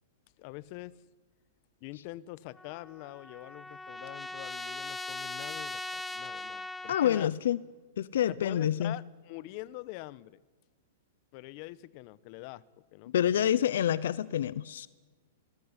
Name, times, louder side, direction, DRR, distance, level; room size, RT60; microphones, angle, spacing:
voice 1, 0.4-1.0 1.8-7.3 8.3-10.4 11.3-12.6 12.9-13.5, left 18 dB, 45° left, 19 dB, 1.1 m, -44 dB
Trumpet, 2.6-7.3, left 2 dB, 5° left, 1.4 m, -40 dB
voice 2, 6.9-7.6 8.0-8.9 13.1-14.9, left 10 dB, 75° left, 19 dB, 0.8 m, -27 dB
27.0 x 19.5 x 9.9 m, 1.3 s
hypercardioid pair, 135°, 0 cm